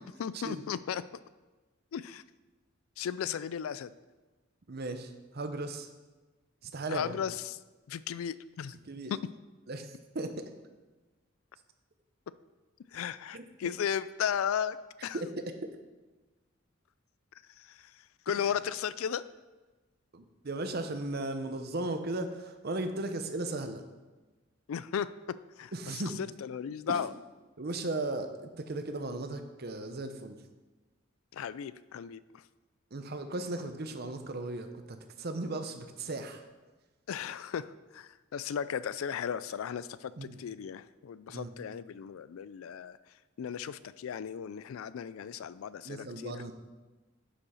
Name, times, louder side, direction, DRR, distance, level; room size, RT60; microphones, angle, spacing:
voice 1, 0.2-1.0 1.9-2.2 3.0-3.9 6.9-7.6 7.9-8.8 12.9-14.8 15.0-15.2 17.6-19.2 24.7-25.1 25.6-27.1 31.3-32.4 37.1-37.7 37.9-40.1 40.4-43.0 43.4-46.4, left 8 dB, 85° left, 16 dB, 0.4 m, -35 dB
voice 2, 4.7-5.9 6.6-7.2 8.8-9.1 9.7-10.5 13.3-13.5 15.1-15.3 18.3-18.4 20.1-23.8 25.7-26.2 26.9-27.0 27.6-30.4 32.9-36.4 40.2-40.4 41.3-41.5 45.8-46.5, right 2 dB, 50° right, 8 dB, 0.8 m, -36 dB
8.4 x 5.5 x 5.6 m, 1.2 s
head